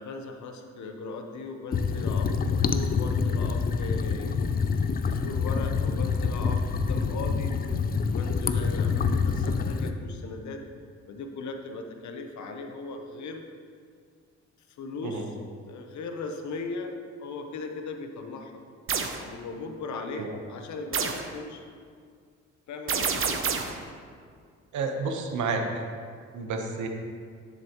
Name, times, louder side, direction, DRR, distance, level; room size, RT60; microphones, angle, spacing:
voice 1, 0.0-4.4 5.0-7.5 8.1-10.6 11.1-13.5 14.8-15.4 15.7-18.6 19.2-21.7 22.7-23.5, left 3 dB, 70° left, 5 dB, 0.9 m, -38 dB
sound 1, 1.7-9.9, left 5 dB, 30° left, 0.5 m, -26 dB
sound 2, 18.9-19.2 20.9-21.3 22.9-23.8, right 6 dB, 45° right, 0.8 m, -28 dB
voice 2, 24.7-25.8 26.3-26.9, right 4 dB, 70° right, 3 dB, 1.1 m, -30 dB
10.0 x 7.0 x 3.0 m, 2.1 s
cardioid pair, 90°, 30 cm